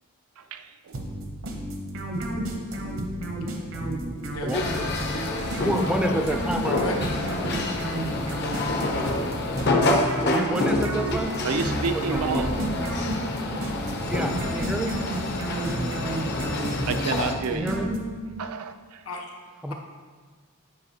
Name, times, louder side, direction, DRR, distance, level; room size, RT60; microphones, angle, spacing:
voice 1, 0.4-1.0 11.4-12.5 16.8-17.8 18.4-19.0, right 5 dB, 85° right, 9 dB, 0.4 m, -30 dB
sound 1, 0.9-18.4, right 1 dB, 65° right, 0.8 m, -31 dB
voice 2, 4.3-4.8 5.1-6.2 6.8-7.3 19.1-19.3, left 1 dB, 80° left, 1 dB, 0.9 m, -33 dB
sound 2, 4.5-17.3, left 2 dB, 50° left, 0.6 m, -28 dB
voice 3, 5.6-6.9 9.8-10.0 10.2-11.3 12.1-12.5 14.1-14.9 17.5-17.9 19.6-19.7, right 1 dB, 5° right, 4 dB, 0.4 m, -28 dB
8.5 x 4.9 x 2.8 m, 1.5 s
head